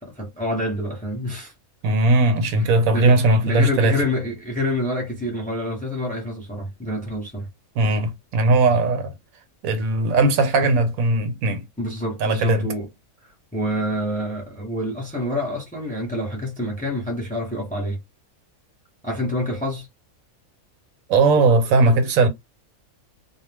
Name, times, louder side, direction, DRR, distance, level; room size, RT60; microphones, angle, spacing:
voice 1, 0.0-1.5 2.9-3.2 3.4-7.5 11.8-12.9 13.5-18.0 19.0-19.9, left 1 dB, 10° left, 0.6 m, -27 dB
voice 2, 1.8-4.0 7.8-9.1 9.6-11.6 12.2-12.7 21.1-22.3, right 2 dB, 80° right, 1.1 m, -18 dB
2.3 x 2.1 x 3.3 m
omnidirectional pair, 1.5 m